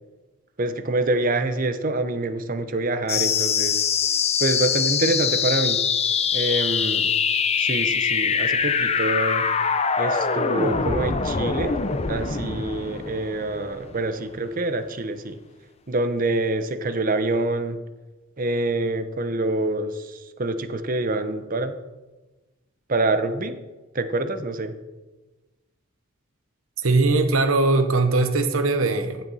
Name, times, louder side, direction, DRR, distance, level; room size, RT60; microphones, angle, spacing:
voice 1, 0.6-3.8 4.4-5.8 6.3-7.1 7.6-9.5 10.0-11.8 12.1-15.4 15.9-17.8 18.4-21.7 22.9-23.6 23.9-24.7, right 2 dB, 40° right, 10 dB, 0.8 m, -26 dB
sound 1, 3.1-14.1, left 6 dB, 30° left, 0.6 m, -23 dB
voice 2, 26.8-29.2, right 3 dB, 70° right, 7 dB, 1.1 m, -20 dB
15.0 x 7.5 x 4.1 m, 1.2 s
head